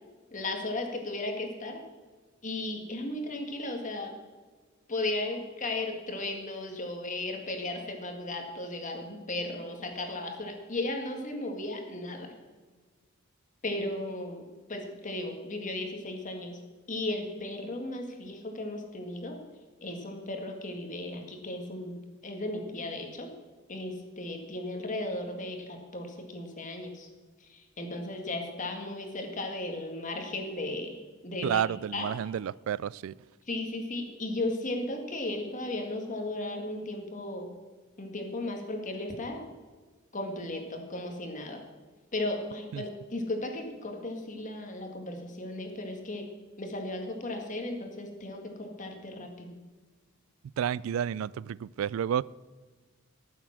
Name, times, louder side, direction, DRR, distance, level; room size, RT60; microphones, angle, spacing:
voice 1, 0.3-1.8 2.4-4.1 4.9-12.3 13.6-14.4 14.7-16.6 16.9-19.4 19.8-22.0 22.2-23.3 23.7-27.1 27.5-31.0 31.2-31.6 31.9-32.1 33.5-37.5 38.0-39.4 40.1-41.6 42.1-46.3 46.6-49.5, left 2 dB, 40° left, 1.9 m, -35 dB
voice 2, 31.4-33.2 42.7-42.8 50.6-52.2, right 9 dB, 90° right, 0.3 m, -30 dB
14.0 x 7.4 x 6.1 m
head